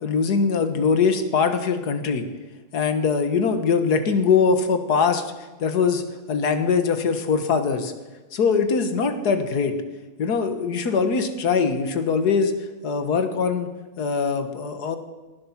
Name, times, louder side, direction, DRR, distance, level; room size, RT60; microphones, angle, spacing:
voice 1, 0.0-2.2 2.7-5.2 5.6-6.0 6.3-7.9 8.3-9.7 10.2-12.5 12.8-13.7 14.0-15.0, left 5 dB, 85° left, 9 dB, 1.9 m, -22 dB
18.5 x 12.0 x 5.9 m, 1.2 s
omnidirectional pair, 1.7 m